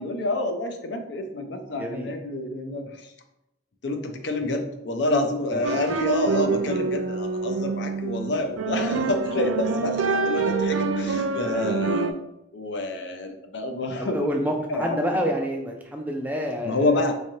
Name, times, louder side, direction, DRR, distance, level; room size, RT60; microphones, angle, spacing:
voice 1, 0.0-3.1 3.8-12.2 12.5-14.3 14.7-15.2 16.6-17.2, left 2 dB, 60° left, 6 dB, 0.5 m, -28 dB
voice 2, 1.8-2.1 5.5-5.8 11.5-11.8 14.0-17.0, equal, 10° right, 2 dB, 0.3 m, -28 dB
sound 1, 5.6-12.1, right 4 dB, 85° right, 0.3 m, -26 dB
3.5 x 3.2 x 2.7 m, 0.86 s
head